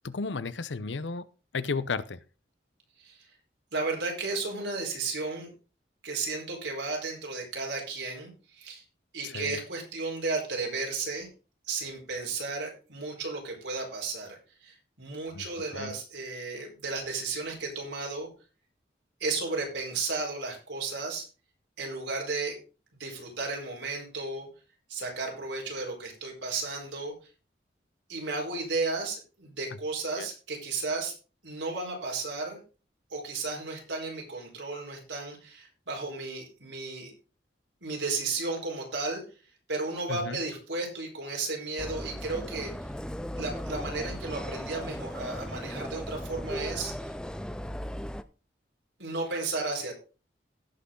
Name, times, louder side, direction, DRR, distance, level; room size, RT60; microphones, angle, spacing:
voice 1, 0.0-1.3 1.5-2.2 9.2-9.6 15.3-15.4 15.7-16.0 30.2-30.3 40.1-40.4, left 4 dB, 85° left, 16 dB, 0.7 m, -33 dB
voice 2, 3.7-5.5 6.0-8.8 9.1-11.3 11.7-18.3 19.2-21.3 21.8-22.6 23.0-24.5 24.9-27.1 28.1-31.1 31.4-32.6 33.1-37.1 37.8-39.2 39.7-42.7 43.4-47.1 49.0-49.9, right 3 dB, 85° right, 0 dB, 4.5 m, -34 dB
sound 1, 41.8-48.2, equal, 5° left, 0.4 m, -37 dB
17.0 x 6.2 x 3.8 m, 0.34 s
head